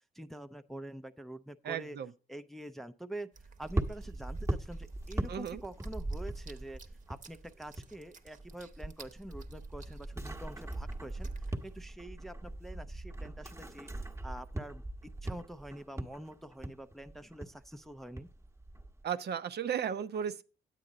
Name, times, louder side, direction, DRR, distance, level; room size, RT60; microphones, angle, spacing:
voice 1, 0.1-2.0 2.3-6.8 7.1-11.3 11.6-13.9 14.2-18.3, right 1 dB, ahead, 0.5 m, -46 dB
voice 2, 1.6-2.1 5.3-5.6 19.0-20.4, right 8 dB, 55° right, 0.7 m, -35 dB
sound 1, 3.3-11.8, right 4 dB, 40° right, 1.0 m, -57 dB
sound 2, 3.6-8.0 8.3-19.0, right 1 dB, 15° right, 1.1 m, -40 dB
9.7 x 8.5 x 3.9 m
cardioid pair, 90°, 20 cm